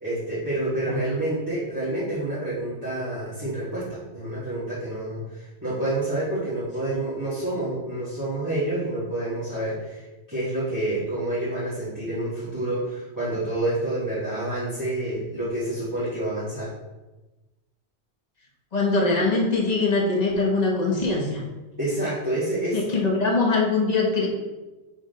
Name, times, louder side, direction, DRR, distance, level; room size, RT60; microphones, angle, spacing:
voice 1, 0.0-16.7 21.8-22.8, right 1 dB, 15° right, -11 dB, 1.6 m, -28 dB
voice 2, 18.7-21.4 22.7-24.3, left 3 dB, 35° left, -1 dB, 1.2 m, -22 dB
4.9 x 4.0 x 5.1 m, 1.1 s
omnidirectional pair, 1.2 m